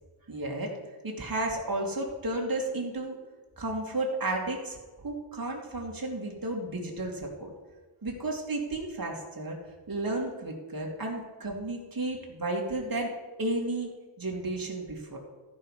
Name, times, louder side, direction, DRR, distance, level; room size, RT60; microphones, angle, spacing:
voice 1, 0.3-0.7 1.0-3.2 3.6-4.8 5.0-7.5 8.0-9.6 9.9-13.1 13.4-13.9 14.2-15.2, right 2 dB, 45° right, -1 dB, 2.5 m, -32 dB
14.0 x 5.7 x 4.9 m, 1.3 s
wide cardioid pair, 70°, 49 cm